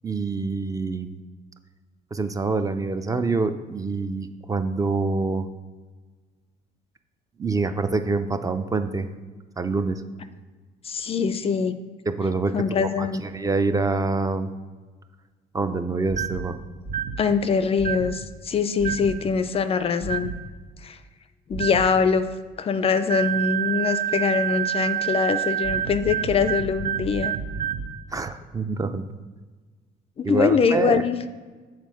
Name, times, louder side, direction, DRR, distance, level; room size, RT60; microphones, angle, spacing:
voice 1, 0.0-1.2 2.1-5.5 7.4-9.1 9.6-10.0 12.1-14.5 15.5-16.6 28.1-29.0 30.2-31.1, right 3 dB, 20° right, 9 dB, 0.5 m, -26 dB
voice 2, 10.8-11.8 12.5-13.2 17.2-20.3 20.8-21.0 21.5-22.3 22.6-27.3 30.2-31.2, left 5 dB, 35° left, 12 dB, 0.4 m, -23 dB
sound 1, 16.1-16.5 16.8-17.2 17.8-18.1 18.8-19.2 20.0-20.4 21.5-21.9 23.1-27.9, right 9 dB, 60° right, 0.9 m, -28 dB
7.4 x 4.2 x 6.2 m, 1.4 s
cardioid pair, 110°, 17 cm